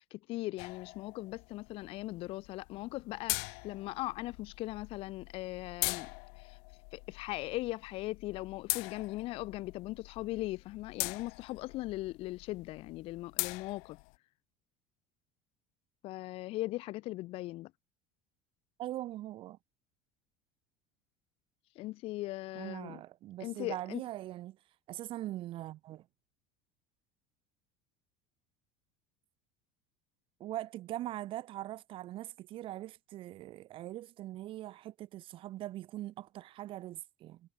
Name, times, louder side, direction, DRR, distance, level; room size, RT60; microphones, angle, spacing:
voice 1, 0.0-6.1 6.4-6.6 6.9-14.0 16.0-17.7 21.8-23.0 23.4-24.0, left 18 dB, 45° left, 0.4 m, -39 dB
sound 1, 0.6-14.2, left 40 dB or more, 75° left, 1.1 m, -42 dB
voice 2, 18.8-19.6 22.5-24.6 24.9-26.0 30.4-37.4, right 14 dB, 40° right, 0.9 m, -41 dB
cardioid pair, 155°, 13 cm